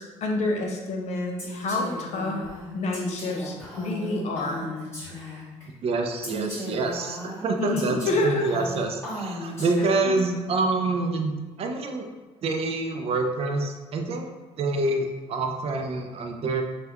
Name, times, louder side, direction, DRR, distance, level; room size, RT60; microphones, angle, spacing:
voice 1, 0.0-2.4 2.7-4.7 7.6-8.6 10.0-10.1, left 2 dB, 60° left, 1 dB, 0.6 m, -28 dB
Female speech woman speaking, 1.4-5.6 6.2-10.2, left 1 dB, 20° left, 1.5 m, -36 dB
voice 2, 5.8-8.0 8.2-12.1 12.4-14.3 14.6-16.6, right 3 dB, 50° right, 4 dB, 0.4 m, -27 dB
3.4 x 2.2 x 2.8 m, 1.2 s
cardioid pair, 120°, 13 cm